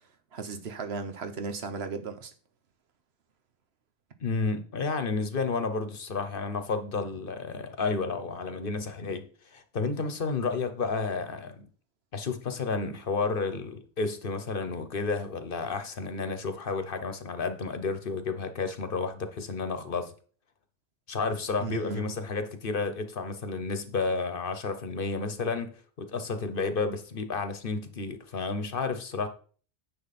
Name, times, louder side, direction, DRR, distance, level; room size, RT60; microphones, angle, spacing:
voice 1, 0.3-2.3 21.6-22.1, right 4 dB, 70° right, 1.2 m, -35 dB
voice 2, 4.2-11.7 12.1-20.1 21.1-29.3, left 4 dB, 55° left, 1.1 m, -31 dB
9.9 x 6.2 x 4.2 m
omnidirectional pair, 1.1 m